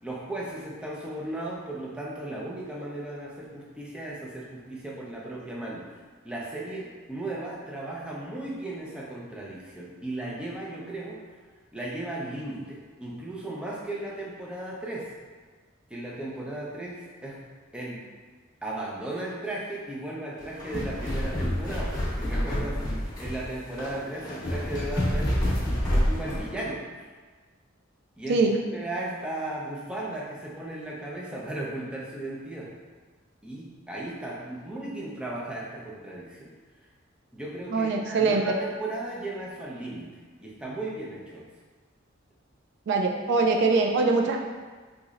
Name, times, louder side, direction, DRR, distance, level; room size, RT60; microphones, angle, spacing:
voice 1, 0.0-5.8 6.2-11.2 11.7-15.1 15.9-17.4 17.7-18.1 18.6-25.4 25.9-26.8 28.2-28.4 28.7-32.7 33.4-36.5 37.3-40.1 40.4-41.5, right 1 dB, 5° right, -4 dB, 0.5 m, -36 dB
sound 1, 20.4-26.5, equal, 20° left, 0.9 m, -28 dB
voice 2, 37.7-38.5 42.9-44.4, right 3 dB, 60° right, 2 dB, 0.3 m, -23 dB
4.0 x 3.0 x 2.4 m, 1.4 s
head